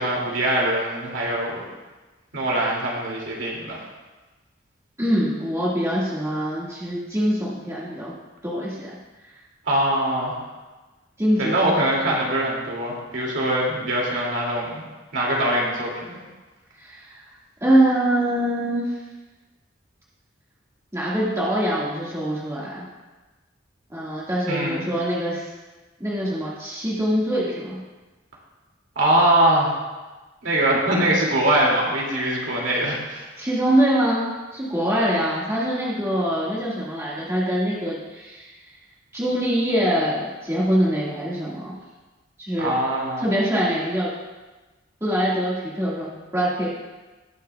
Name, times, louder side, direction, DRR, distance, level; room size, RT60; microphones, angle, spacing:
voice 1, 0.0-1.6 2.3-3.8 9.7-10.4 11.4-14.8 15.1-16.2 24.5-24.9 29.0-29.7 30.4-33.2 42.6-43.2, right 1 dB, 75° right, -3 dB, 2.4 m, -22 dB
voice 2, 5.0-8.1 8.4-9.0 11.2-11.7 16.8-17.3 17.6-18.9 20.9-22.9 23.9-25.5 26.0-27.8 33.4-38.5 39.1-41.7 42.4-42.7 43.2-44.1 45.0-46.7, equal, 15° right, -7 dB, 1.8 m, -24 dB
18.0 x 6.4 x 2.3 m, 1.2 s
head